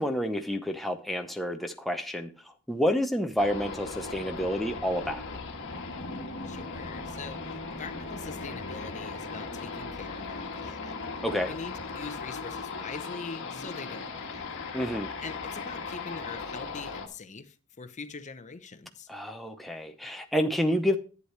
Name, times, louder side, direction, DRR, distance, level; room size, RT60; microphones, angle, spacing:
voice 1, 0.0-2.3 2.7-5.2 11.2-11.5 14.7-15.1 19.1-21.0, equal, ahead, 0.6 m, -29 dB
sound 1, 3.4-17.1, left 4 dB, 60° left, 1.5 m, -38 dB
voice 2, 6.4-10.9 11.4-14.9 15.2-19.1, left 4 dB, 35° left, 0.7 m, -43 dB
11.0 x 8.1 x 3.2 m
head